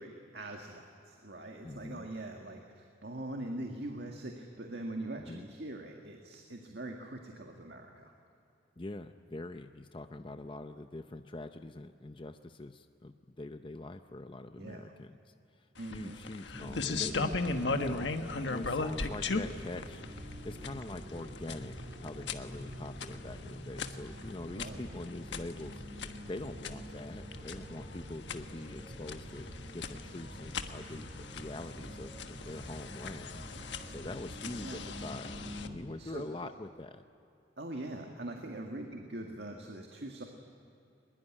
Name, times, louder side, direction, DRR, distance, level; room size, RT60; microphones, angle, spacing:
voice 1, 0.0-8.1 14.6-14.9 15.8-16.2 24.5-24.8 34.6-34.8 36.0-36.5 37.6-40.2, right 1 dB, 65° right, 2 dB, 2.0 m, -42 dB
voice 2, 1.6-2.1 5.2-5.4 8.8-18.1 18.5-33.4 33.9-37.1, left 2 dB, 25° left, 8 dB, 0.6 m, -44 dB
sound 1, 15.8-35.7, left 3 dB, 75° left, 1.3 m, -39 dB
sound 2, 16.5-35.7, equal, 30° right, 5.2 m, -46 dB
22.5 x 21.5 x 9.9 m, 2.8 s
head